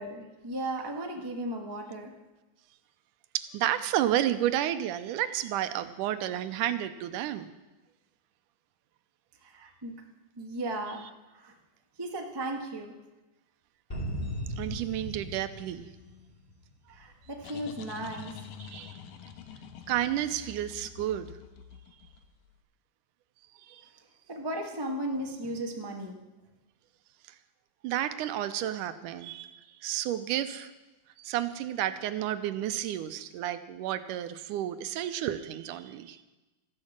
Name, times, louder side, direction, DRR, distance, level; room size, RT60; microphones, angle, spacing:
voice 1, 0.0-2.1 9.4-10.0 10.4-11.6 12.0-12.9 16.9-18.4 24.3-26.2, right 1 dB, 20° right, 1 dB, 0.5 m, -36 dB
voice 2, 3.3-7.5 14.6-15.9 18.7-19.0 19.9-21.3 23.7-23.8 27.8-30.7 31.2-36.2, right 12 dB, 80° right, 11 dB, 2.2 m, -31 dB
sound 1, 13.9-16.6, equal, 15° left, 2.2 m, -37 dB
sound 2, 16.9-22.5, left 8 dB, 85° left, 2.6 m, -46 dB
14.0 x 11.0 x 7.4 m, 1.1 s
omnidirectional pair, 3.7 m